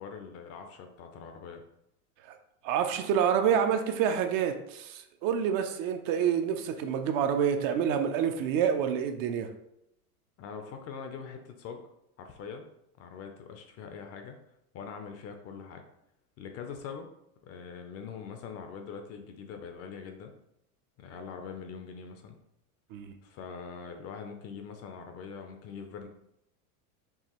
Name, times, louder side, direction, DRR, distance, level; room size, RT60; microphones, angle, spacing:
voice 1, 0.0-1.6 10.4-11.8 12.2-12.6 13.0-14.4 14.7-15.8 16.4-17.1 17.4-20.3 21.0-22.4 23.2-26.1, left 6 dB, 35° left, 5 dB, 0.5 m, -43 dB
voice 2, 2.6-9.5 22.9-23.1, right 8 dB, 50° right, 7 dB, 0.5 m, -27 dB
4.7 x 2.9 x 2.9 m, 0.79 s
supercardioid pair, 125°, 44 cm